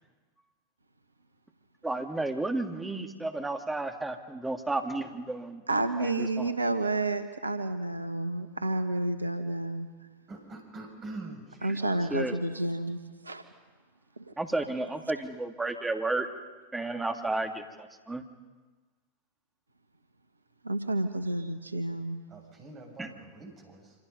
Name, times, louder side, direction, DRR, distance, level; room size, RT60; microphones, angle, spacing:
voice 1, 1.8-5.6 6.0-6.5 11.7-11.8 12.1-12.4 14.4-16.3 16.7-18.2 23.0-23.1, right 2 dB, 10° right, 4 dB, 2.5 m, -32 dB
voice 2, 5.7-9.9 11.6-13.4 14.2-14.3 20.6-22.2, right 2 dB, 80° right, 9 dB, 1.6 m, -30 dB
voice 3, 10.3-12.1 22.3-23.9, right 2 dB, 25° right, 3 dB, 7.1 m, -45 dB
27.0 x 27.0 x 5.5 m, 1.3 s
figure-of-eight pair, 90°, 0 cm